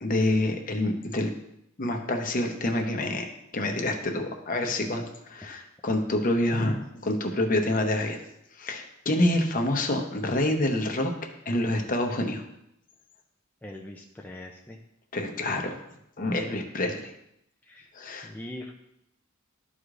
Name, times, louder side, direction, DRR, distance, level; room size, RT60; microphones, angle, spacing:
voice 1, 0.0-1.3 1.8-8.2 8.6-11.1 11.5-12.4 15.1-15.8 16.2-17.1 17.9-18.3, left 1 dB, 40° left, 3 dB, 0.8 m, -27 dB
voice 2, 13.6-14.8 17.6-17.9 18.2-18.7, left 1 dB, 10° left, -1 dB, 0.4 m, -41 dB
12.5 x 4.8 x 2.5 m, 0.80 s
head